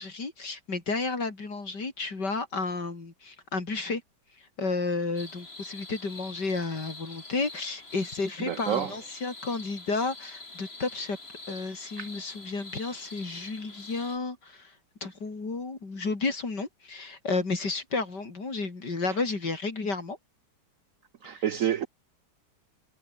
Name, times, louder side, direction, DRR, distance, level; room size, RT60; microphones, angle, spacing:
voice 1, 0.0-4.0 4.4-11.2 11.5-14.7 15.0-20.2 21.3-21.4, left 3 dB, 70° left, 4.7 m, -32 dB
sound 1, 5.2-14.2, left 3 dB, 35° left, 3.4 m, -45 dB
voice 2, 8.4-9.0 12.0-12.1 21.2-21.9, right 9 dB, 60° right, 0.9 m, -28 dB
omnidirectional pair, 1.9 m